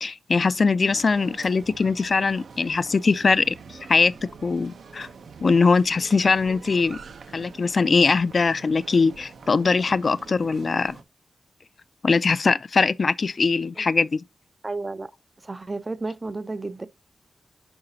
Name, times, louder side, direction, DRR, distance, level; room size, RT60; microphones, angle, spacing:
voice 1, 0.0-3.5 3.9-4.1 4.4-5.1 5.4-7.0 7.3-11.0 12.0-14.2, left 4 dB, 40° left, 0.3 m, -21 dB
sound 1, 0.8-11.0, right 5 dB, 80° right, 0.8 m, -45 dB
voice 2, 14.6-15.1 15.4-16.9, right 3 dB, 25° right, 0.4 m, -32 dB
8.8 x 5.7 x 2.7 m
wide cardioid pair, 165°, 0 cm